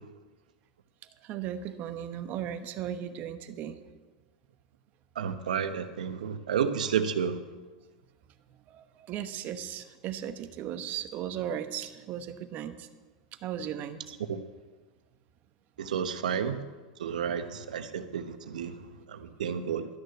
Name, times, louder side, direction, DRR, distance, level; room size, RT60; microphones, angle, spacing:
voice 1, 1.2-3.8 8.7-12.9 13.4-14.0, right 10 dB, 45° right, 10 dB, 1.0 m, -36 dB
voice 2, 5.2-7.4 14.2-14.4 15.8-16.6 17.0-18.8 19.1-19.9, right 7 dB, 85° right, 10 dB, 1.0 m, -31 dB
12.5 x 6.6 x 9.1 m, 1.3 s
hypercardioid pair, 120°, 4 cm